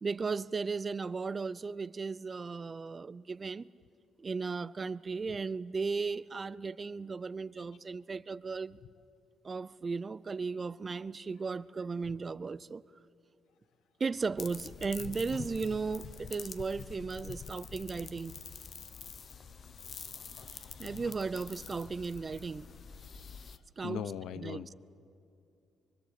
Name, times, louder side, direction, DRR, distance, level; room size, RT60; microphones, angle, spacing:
voice 1, 0.0-3.7 4.2-8.8 9.4-12.8 14.0-18.3 20.8-22.7 23.8-24.0 24.4-24.6, right 4 dB, 35° right, 0.5 m, -36 dB
sound 1, 14.4-23.6, left 6 dB, 50° left, 1.1 m, -46 dB
voice 2, 20.1-21.0 23.8-24.7, left 9 dB, 80° left, 0.9 m, -42 dB
24.5 x 24.0 x 8.3 m
cardioid pair, 90°, 0 cm